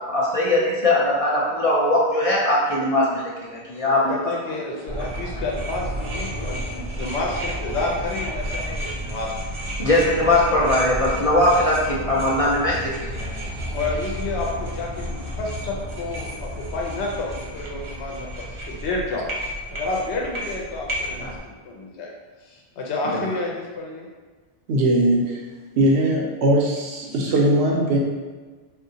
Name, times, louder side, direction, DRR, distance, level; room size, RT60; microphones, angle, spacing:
voice 1, 0.1-4.6 9.8-13.5 23.1-23.2, left 1 dB, 55° left, -5 dB, 0.4 m, -21 dB
voice 2, 3.8-9.5 13.7-19.3 19.7-22.1 22.4-24.1, left 2 dB, 90° left, -1 dB, 0.9 m, -30 dB
sound 1, 4.9-21.4, equal, 50° right, 0.3 m, -31 dB
voice 3, 24.7-25.4 25.8-28.0, right 1 dB, 80° right, -1 dB, 0.9 m, -20 dB
3.6 x 2.4 x 2.7 m, 1.4 s
omnidirectional pair, 1.1 m